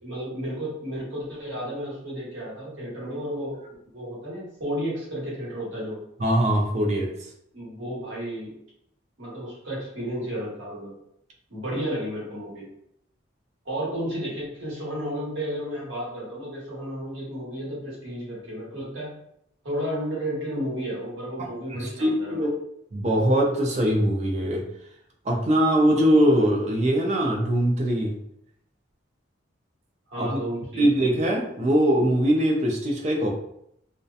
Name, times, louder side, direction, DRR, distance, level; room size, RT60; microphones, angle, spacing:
voice 1, 0.0-3.6 3.9-6.0 7.5-8.6 9.2-10.9 11.5-12.6 13.6-19.2 19.6-22.5 30.1-30.8, equal, 80° right, -6 dB, 1.2 m, -32 dB
voice 2, 6.2-7.1 21.7-22.5 22.9-24.6 25.2-28.2 30.2-30.4 30.8-33.3, equal, 35° right, 0 dB, 0.4 m, -22 dB
2.6 x 2.1 x 2.3 m, 0.75 s
head